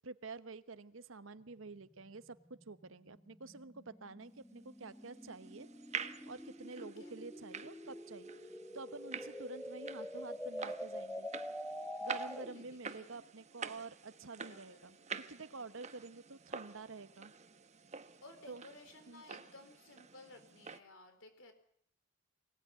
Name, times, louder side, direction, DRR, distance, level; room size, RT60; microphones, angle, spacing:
voice 1, 0.0-5.7 6.3-11.3 12.0-17.3 18.5-18.6 19.1-19.2, right 3 dB, 80° right, 13 dB, 1.1 m, -49 dB
sound 1, 1.4-12.7, equal, 5° left, 1.2 m, -46 dB
sound 2, 4.8-20.8, right 6 dB, 35° right, 1.1 m, -48 dB
voice 2, 6.7-7.1 12.3-13.1 14.4-15.4 15.9-16.0 18.2-21.5, left 2 dB, 70° left, 7 dB, 4.3 m, -57 dB
23.5 x 18.0 x 9.5 m, 0.69 s
head